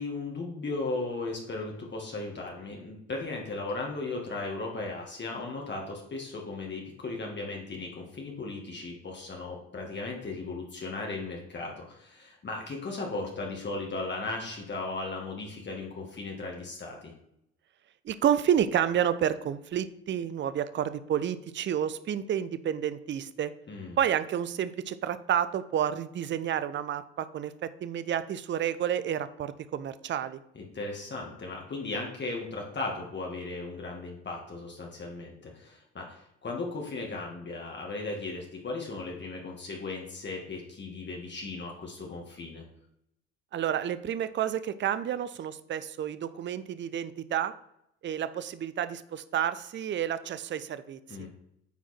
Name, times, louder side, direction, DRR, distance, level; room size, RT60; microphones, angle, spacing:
voice 1, 0.0-17.1 23.7-24.0 30.6-42.6 51.1-51.3, left 3 dB, 40° left, 0 dB, 2.1 m, -36 dB
voice 2, 18.0-23.5 24.0-30.4 43.5-47.5 48.0-51.3, right 9 dB, 40° right, 14 dB, 0.6 m, -30 dB
9.3 x 4.5 x 4.4 m, 0.77 s
hypercardioid pair, 60°, 29 cm